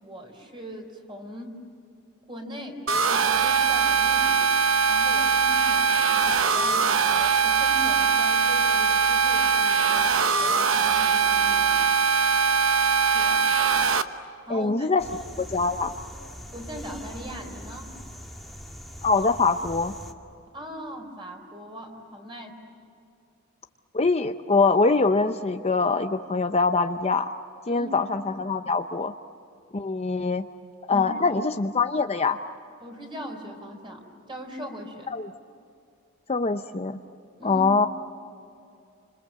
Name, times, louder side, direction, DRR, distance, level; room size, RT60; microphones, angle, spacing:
voice 1, 0.0-1.6 2.3-4.5 4.9-11.9 13.1-13.4 14.5-14.9 15.2-15.4 16.5-17.9 20.5-22.6 27.7-28.0 30.9-31.4 32.8-35.1 37.4-37.7, equal, 25° right, 3 dB, 4.3 m, -40 dB
sound 1, 2.9-14.0, right 6 dB, 70° right, 1.1 m, -21 dB
voice 2, 14.5-15.0 15.4-15.9 19.0-19.9 23.9-27.3 27.7-29.1 29.7-30.4 30.9-32.4 35.1-35.3 36.3-37.0 37.4-37.9, left 4 dB, 30° left, 7 dB, 0.7 m, -23 dB
sound 2, 15.0-20.1, equal, ahead, 1.9 m, -42 dB
30.0 x 26.5 x 7.6 m, 2.5 s
head